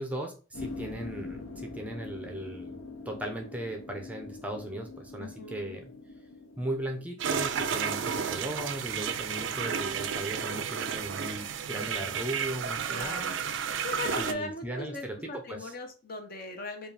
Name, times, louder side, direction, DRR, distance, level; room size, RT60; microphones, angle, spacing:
voice 1, 0.0-2.8 3.1-5.9 6.6-13.3 14.2-15.7, right 1 dB, 5° right, 3 dB, 0.5 m, -37 dB
sound 1, 0.5-7.1, left 3 dB, 80° left, 0.7 m, -43 dB
voice 2, 5.2-5.8 12.9-13.4 13.8-16.9, left 2 dB, 45° left, 4 dB, 0.8 m, -39 dB
sound 2, 7.2-14.3, right 7 dB, 60° right, 0.4 m, -32 dB
4.8 x 2.4 x 3.3 m, 0.36 s
head